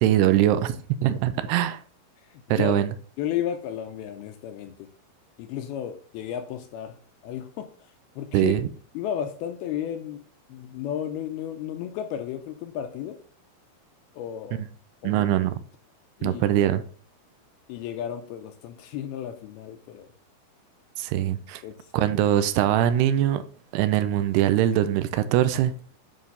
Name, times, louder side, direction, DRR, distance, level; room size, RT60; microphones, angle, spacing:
voice 1, 0.0-1.8 2.5-2.9 8.3-8.7 15.0-15.6 16.2-16.8 21.0-21.6 21.9-23.4 23.7-25.7, right 12 dB, 85° right, 2.6 m, -22 dB
voice 2, 2.3-2.8 3.2-4.8 5.4-7.0 7.2-7.7 8.2-8.5 8.9-10.2 10.5-13.2 14.1-14.6 15.0-15.3 16.2-16.4 17.7-20.1 21.6-21.8, left 10 dB, 85° left, 2.4 m, -33 dB
9.3 x 3.3 x 5.4 m
omnidirectional pair, 4.9 m